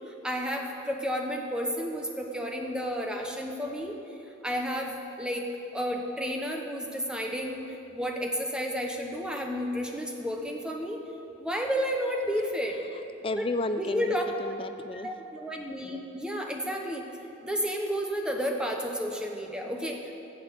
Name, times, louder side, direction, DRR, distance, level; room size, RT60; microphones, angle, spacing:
voice 1, 0.1-4.0 4.4-7.6 7.9-11.0 11.4-12.8 13.4-13.5 13.9-14.2 14.9-17.1 17.4-20.1, equal, 5° right, 1 dB, 1.0 m, -31 dB
voice 2, 13.2-15.2 19.6-19.8, left 2 dB, 25° left, 9 dB, 0.5 m, -33 dB
16.0 x 6.1 x 8.3 m, 3.0 s
head